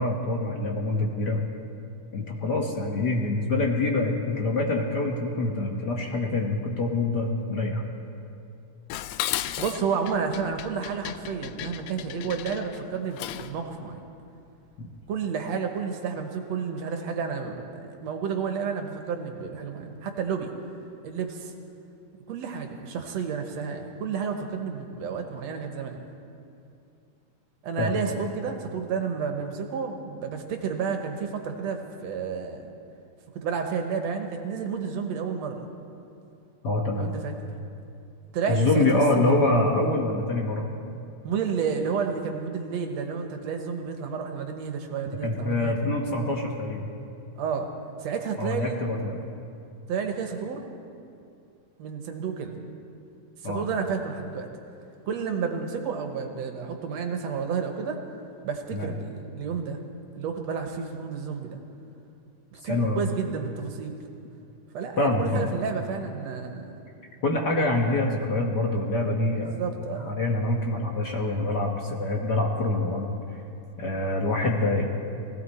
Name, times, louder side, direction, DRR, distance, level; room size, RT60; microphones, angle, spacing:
voice 1, 0.0-1.4 2.1-7.8 14.8-14.9 27.8-28.2 36.6-37.1 38.5-40.7 45.2-46.8 48.4-49.2 53.4-53.6 58.7-58.9 62.6-63.0 65.0-65.4 67.2-69.6 70.0-73.1 73.8-74.8, left 2 dB, 65° left, 0 dB, 1.0 m, -25 dB
Dishes pots and pans, 8.9-13.6, left 13 dB, 80° left, 1.6 m, -35 dB
voice 2, 9.6-14.0 15.1-20.5 21.0-21.5 22.3-26.0 27.6-32.7 33.4-35.7 37.0-37.3 38.3-39.4 39.8-39.9 41.2-45.8 47.4-47.7 48.0-48.8 49.9-50.6 51.8-52.6 53.4-54.5 55.1-58.0 58.4-59.8 60.1-61.6 62.5-63.9 64.7-66.8 69.3-70.2, right 6 dB, 65° right, 4 dB, 2.0 m, -31 dB
20.5 x 16.5 x 4.2 m, 2.6 s
omnidirectional pair, 3.7 m